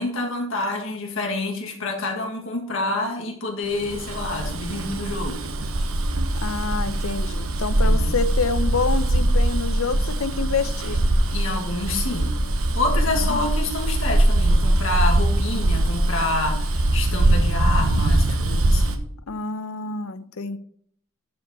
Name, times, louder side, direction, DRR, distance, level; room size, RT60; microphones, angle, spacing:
voice 1, 0.0-5.4 7.8-8.2 11.3-12.4 12.7-19.0, left 2 dB, 65° left, 1 dB, 1.8 m, -28 dB
Bus, 3.8-19.0, right 1 dB, 90° right, 1.0 m, -22 dB
voice 2, 6.4-11.0 13.1-13.5 19.3-20.6, left 4 dB, 85° left, 12 dB, 0.7 m, -27 dB
12.0 x 5.2 x 4.1 m, 0.63 s
head